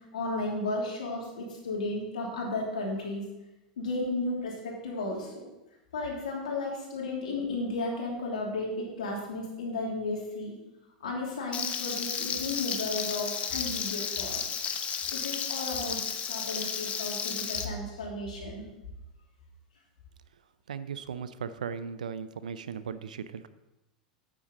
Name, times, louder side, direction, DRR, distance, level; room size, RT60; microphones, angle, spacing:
voice 1, 0.1-3.3 3.8-5.5 5.9-10.5 11.0-14.4 15.1-16.0 16.3-18.6, left 2 dB, 80° left, -2 dB, 3.1 m, -34 dB
Frying (food), 11.5-17.6, left 7 dB, 30° left, 1.1 m, -33 dB
voice 2, 20.7-23.5, right 6 dB, 80° right, 14 dB, 0.5 m, -37 dB
8.9 x 8.6 x 4.1 m, 0.97 s
hypercardioid pair, 95°, 4 cm